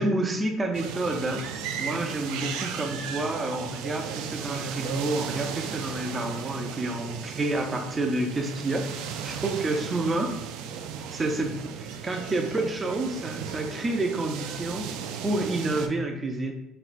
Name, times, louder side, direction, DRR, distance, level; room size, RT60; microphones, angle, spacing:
voice 1, 0.0-1.4 1.8-10.3 11.1-14.9 15.2-16.5, right 2 dB, 15° right, 3 dB, 0.4 m, -29 dB
sound 1, 0.7-15.9, right 7 dB, 90° right, 0.3 m, -36 dB
4.2 x 2.3 x 2.5 m, 0.88 s
cardioid pair, 175°, 0 cm